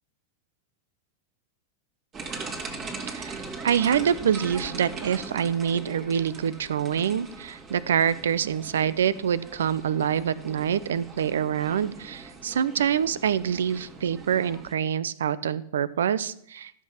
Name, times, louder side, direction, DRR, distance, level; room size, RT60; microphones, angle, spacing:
sound 1, 2.1-14.7, right 3 dB, 30° right, 2.3 m, -40 dB
voice 1, 3.0-16.7, right 8 dB, 75° right, 18 dB, 0.5 m, -26 dB
13.0 x 6.0 x 5.7 m, 0.69 s
hypercardioid pair, 95°, 0 cm